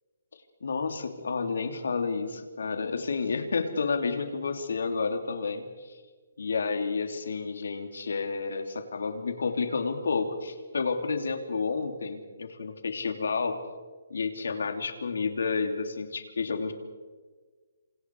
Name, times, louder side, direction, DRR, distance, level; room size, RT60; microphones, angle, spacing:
voice 1, 0.6-6.0 6.4-13.6 14.1-16.7, left 4 dB, 75° left, 6 dB, 3.1 m, -30 dB
27.0 x 27.0 x 4.8 m, 1.4 s
hypercardioid pair, 175°, 0 cm